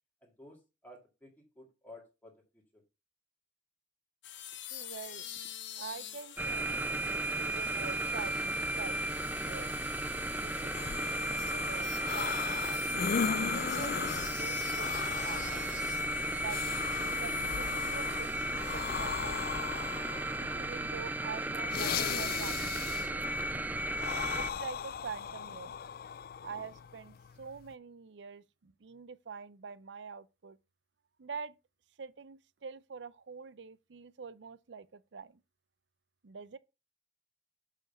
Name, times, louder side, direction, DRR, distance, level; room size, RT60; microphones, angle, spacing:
voice 1, 0.2-2.8, left 1 dB, 10° left, 2.1 m, -54 dB
sound 1, 4.2-19.4, left 11 dB, 85° left, 1.0 m, -46 dB
voice 2, 4.7-5.3 5.8-9.7 10.3-12.7 13.2-15.6 16.3-19.9 20.4-23.6 24.3-25.8 26.4-30.6 31.2-31.5 32.0-35.4 36.2-36.6, right 5 dB, 75° right, 0.6 m, -46 dB
sound 2, 6.4-24.5, right 1 dB, 10° right, 0.5 m, -34 dB
sound 3, 10.7-27.7, left 7 dB, 55° left, 0.4 m, -38 dB
7.8 x 5.1 x 5.3 m
head